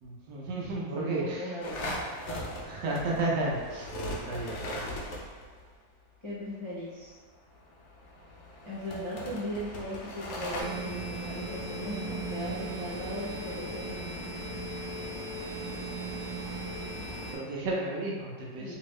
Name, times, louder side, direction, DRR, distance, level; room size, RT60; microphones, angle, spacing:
voice 1, 0.0-1.5 2.6-3.9 4.3-4.9 17.3-18.8, right 2 dB, 75° right, -4 dB, 1.4 m, -32 dB
voice 2, 1.0-2.1 6.2-7.2 8.6-14.2 18.6-18.7, equal, 35° left, -11 dB, 0.4 m, -38 dB
sound 1, 1.6-5.6 7.5-10.6, equal, 80° left, 0.6 m, -38 dB
sound 2, 10.6-17.3, right 2 dB, 30° right, 1.0 m, -37 dB
3.4 x 2.7 x 3.1 m, 1.4 s
omnidirectional pair, 2.0 m